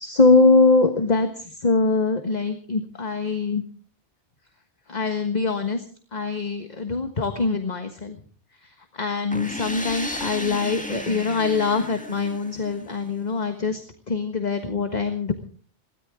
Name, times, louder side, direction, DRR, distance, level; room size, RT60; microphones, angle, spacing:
voice 1, 0.0-3.6 4.9-5.8 6.1-8.2 8.6-13.8 14.1-15.3, left 3 dB, 40° left, 6 dB, 1.5 m, -23 dB
sound 1, 9.3-13.1, equal, 5° left, 1.9 m, -34 dB
23.0 x 17.0 x 3.7 m, 0.41 s
omnidirectional pair, 1.2 m